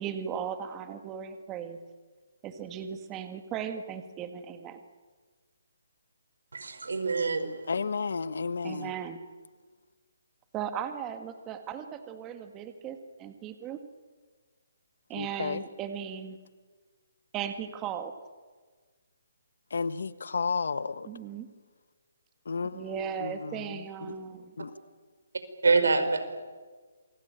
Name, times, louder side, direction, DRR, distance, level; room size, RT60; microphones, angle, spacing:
voice 1, 0.0-1.8 2.4-4.8 8.6-9.2 10.5-13.8 15.1-16.4 17.3-18.1 21.0-21.5 22.7-24.5, right 8 dB, 15° right, 1.8 m, -37 dB
voice 2, 6.5-7.5 25.6-26.4, right 4 dB, 85° right, 4.7 m, -25 dB
voice 3, 7.7-8.9 15.2-15.6 19.7-21.1 22.5-22.9 23.2-23.8 24.6-24.7, left 5 dB, 70° left, 1.4 m, -32 dB
27.5 x 23.0 x 9.1 m
hypercardioid pair, 160°, 0 cm